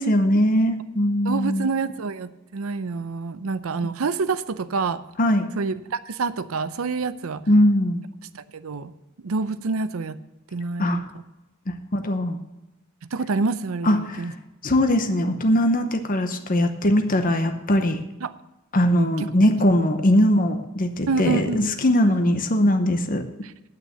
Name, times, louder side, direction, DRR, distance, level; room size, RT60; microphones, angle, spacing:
voice 1, 0.0-1.7 3.8-3.9 5.2-5.5 7.5-8.0 10.8-11.0 11.7-12.4 13.8-14.3 14.6-18.0 18.7-23.2, equal, 40° left, 7 dB, 0.9 m, -20 dB
voice 2, 1.2-5.0 5.6-7.4 8.3-8.9 9.2-10.2 10.5-11.0 13.1-14.3 18.2-18.3 19.0-19.3 21.1-21.6, right 4 dB, 75° right, 13 dB, 0.6 m, -27 dB
9.0 x 8.7 x 6.7 m, 0.99 s
head